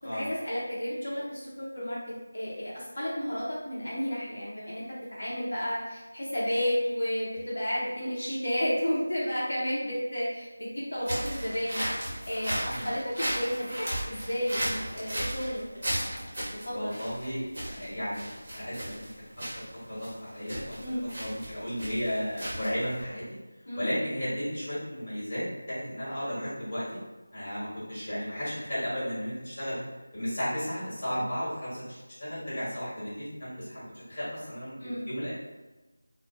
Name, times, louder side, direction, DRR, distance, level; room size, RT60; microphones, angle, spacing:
voice 1, 0.1-2.0 2.3-4.8 5.1-11.8 12.3-13.7 14.1-16.3 16.5-16.9 20.8-21.0 23.7-23.9 34.8-35.1, equal, 70° left, -8 dB, 0.8 m, -32 dB
sound 1, 11.0-23.0, equal, 35° right, 1.0 m, -35 dB
voice 2, 16.7-19.1 19.5-20.8 21.2-23.2 23.7-26.8 27.3-29.8 30.1-35.3, equal, 30° left, -10 dB, 1.3 m, -34 dB
2.6 x 2.1 x 2.4 m, 1.1 s
figure-of-eight pair, 170°, 0 cm